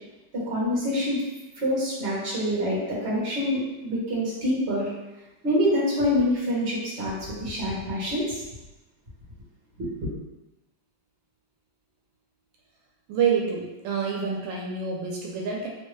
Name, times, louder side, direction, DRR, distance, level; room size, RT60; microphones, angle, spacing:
voice 1, 0.3-1.2 1.6-4.9 5.4-8.4 9.8-10.1, equal, 40° right, -7 dB, 1.3 m, -26 dB
voice 2, 13.1-15.7, right 6 dB, 85° right, -1 dB, 1.3 m, -27 dB
3.2 x 2.6 x 3.1 m, 1.0 s
omnidirectional pair, 2.0 m